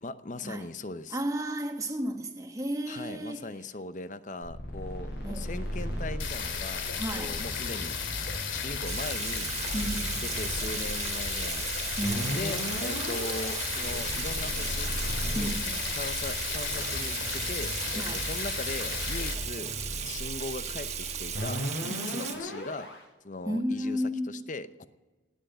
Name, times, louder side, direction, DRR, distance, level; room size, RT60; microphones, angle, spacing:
voice 1, 0.0-1.2 2.9-8.0 8.5-9.5 9.9-11.7 12.3-15.0 15.3-15.6 15.9-19.7 20.0-22.9 23.2-24.9, left 2 dB, 40° left, 0.7 m, -39 dB
voice 2, 1.1-3.5 5.2-5.9 7.0-7.4 9.7-10.3 12.0-12.4 15.3-16.0 17.9-18.3 21.9-22.3 23.4-24.5, equal, 15° right, 1.3 m, -33 dB
sound 1, 4.4-23.0, equal, 60° left, 5.9 m, -38 dB
sound 2, 6.2-19.3, left 6 dB, 85° left, 2.4 m, -34 dB
Water tap faucet / Sink (filling or washing), 8.9-22.4, right 8 dB, 35° right, 1.4 m, -36 dB
18.5 x 7.9 x 8.0 m
head